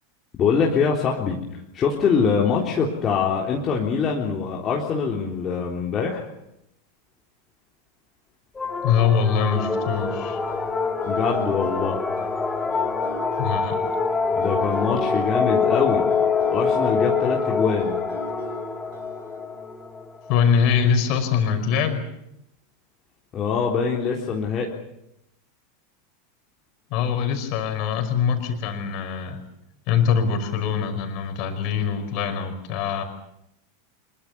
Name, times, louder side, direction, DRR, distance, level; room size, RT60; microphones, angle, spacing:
voice 1, 0.4-1.4 1.7-6.3 11.1-12.0 14.3-16.1 16.5-18.0 23.3-24.7, left 6 dB, 30° left, -2 dB, 3.6 m, -23 dB
sound 1, 8.5-20.4, left 5 dB, 15° left, 2.9 m, -25 dB
voice 2, 8.8-10.4 13.4-13.8 20.3-22.0 26.9-29.4 29.9-33.0, left 7 dB, 45° left, 6 dB, 5.4 m, -23 dB
sound 2, 9.3-19.4, right 5 dB, 65° right, 3.2 m, -41 dB
25.5 x 22.5 x 7.0 m, 0.81 s
figure-of-eight pair, 85°, 0 cm